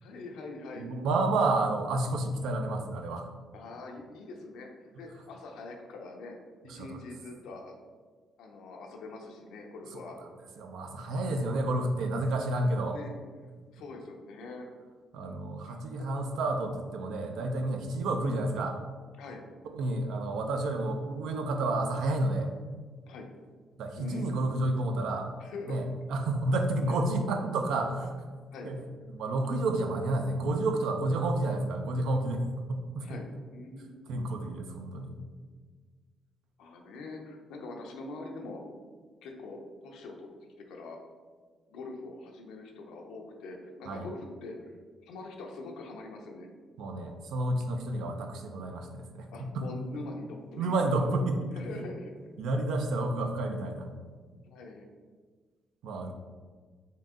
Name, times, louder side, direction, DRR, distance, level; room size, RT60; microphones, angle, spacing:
voice 1, 0.0-0.9 3.5-6.3 6.6-7.8 8.4-10.2 12.6-13.1 13.7-14.7 15.1-16.2 19.2-19.4 23.1-23.3 24.0-24.3 25.4-25.8 26.9-27.0 28.5-28.7 33.0-34.0 36.6-38.6 39.2-39.6 39.8-40.3 40.6-41.0 41.7-44.7 45.0-46.5 49.3-50.8 51.5-52.1 54.5-54.9 55.9-56.1, left 3 dB, 85° left, 2 dB, 0.6 m, -43 dB
voice 2, 0.8-3.3 6.7-7.0 9.9-10.0 10.6-13.0 15.1-18.8 19.6-22.5 23.8-25.3 25.7-28.2 28.6-28.8 29.1-33.2 34.1-35.2 43.9-44.1 46.8-49.7 50.6-51.9 52.4-53.9 55.8-56.1, right 2 dB, 80° right, 4 dB, 0.5 m, -30 dB
3.7 x 2.7 x 3.6 m, 1.5 s
cardioid pair, 90°, 0 cm